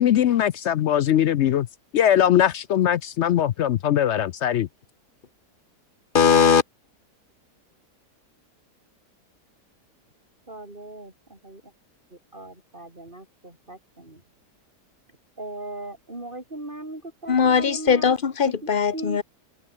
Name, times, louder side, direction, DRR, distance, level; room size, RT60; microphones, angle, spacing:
voice 1, 0.0-1.7 1.9-4.7, left 10 dB, 70° left, 0.6 m, -21 dB
voice 2, 6.1-6.6 17.3-19.2, left 6 dB, 35° left, 1.1 m, -19 dB
voice 3, 10.5-11.6 12.1-14.2 15.4-18.2 18.4-18.5 18.9-19.2, right 2 dB, 30° right, 5.1 m, -38 dB
open air
omnidirectional pair, 1.8 m